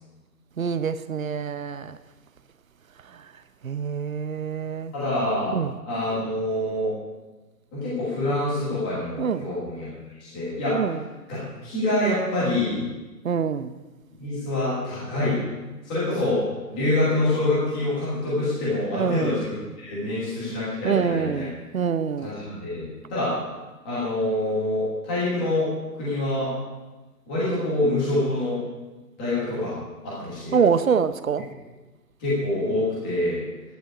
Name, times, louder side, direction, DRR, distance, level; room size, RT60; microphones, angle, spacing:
voice 1, 0.6-2.0 3.1-3.2 3.6-4.9 5.5-5.8 9.2-9.5 10.7-11.0 13.2-13.8 18.9-19.4 20.8-22.3 30.5-31.5, right 6 dB, 55° right, 0.7 m, -25 dB
voice 2, 4.9-5.6 5.8-6.9 7.7-9.9 10.2-10.8 11.3-12.8 14.2-15.4 15.8-16.4 16.7-21.5 22.2-23.3 23.8-25.7 26.0-26.5 27.3-28.6 29.2-29.7 30.0-30.6 32.2-33.4, left 1 dB, 5° left, 1.2 m, -26 dB
11.5 x 10.5 x 5.0 m
hypercardioid pair, 175°, 48 cm